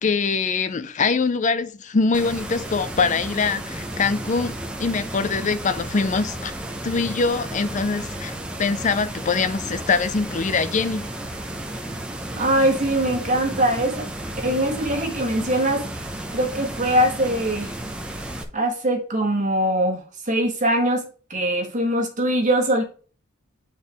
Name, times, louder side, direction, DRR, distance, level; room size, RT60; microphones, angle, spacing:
voice 1, 0.0-4.5 4.8-6.5 6.8-8.3 8.6-11.1, left 4 dB, 35° left, 0.4 m, -23 dB
sound 1, 2.1-18.4, right 1 dB, 5° right, 0.7 m, -33 dB
voice 2, 12.3-14.1 14.4-15.9 16.3-17.7 18.5-21.0 21.3-22.8, right 1 dB, 35° right, 1.5 m, -22 dB
8.7 x 4.5 x 3.5 m
head